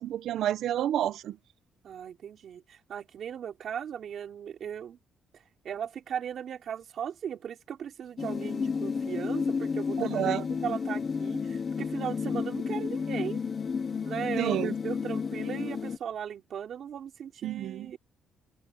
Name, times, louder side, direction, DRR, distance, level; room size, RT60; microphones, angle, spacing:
voice 1, 0.0-1.4 10.0-10.5 14.4-14.7 17.4-18.0, right 11 dB, 60° right, 0.7 m, -29 dB
voice 2, 1.8-5.0 5.6-13.4 14.0-18.0, right 8 dB, 45° right, 4.6 m, -37 dB
sound 1, 8.2-16.0, left 5 dB, 30° left, 0.7 m, -31 dB
cardioid pair, 175°, 0 cm